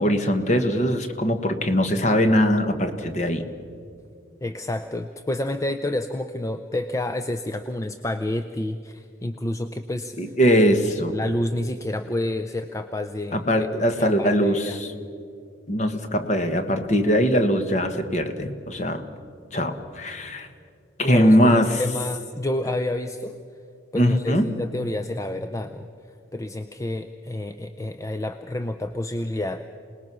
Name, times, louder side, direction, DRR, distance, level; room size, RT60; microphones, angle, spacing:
voice 1, 0.0-3.4 10.2-11.2 13.3-14.9 15.7-19.0 19.5-20.5 21.0-21.8 23.9-24.5, equal, 35° left, 8 dB, 1.3 m, -21 dB
voice 2, 4.4-10.1 11.1-13.7 14.0-14.8 21.0-23.4 23.9-25.9 26.3-29.6, left 1 dB, 15° left, 8 dB, 0.5 m, -29 dB
27.0 x 19.5 x 6.2 m, 2.4 s
head